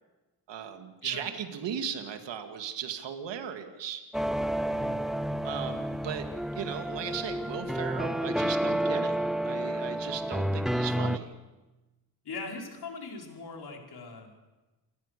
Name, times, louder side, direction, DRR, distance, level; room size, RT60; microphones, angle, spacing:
voice 1, 0.5-4.0 5.4-6.3 6.5-9.2 9.4-11.3, right 8 dB, 85° right, 6 dB, 2.1 m, -37 dB
sound 1, 4.1-11.2, right 1 dB, ahead, 0.8 m, -30 dB
voice 2, 4.6-5.0 12.2-14.3, left 4 dB, 60° left, 1 dB, 4.9 m, -41 dB
27.5 x 15.5 x 6.7 m, 1.1 s
cardioid pair, 65°, 42 cm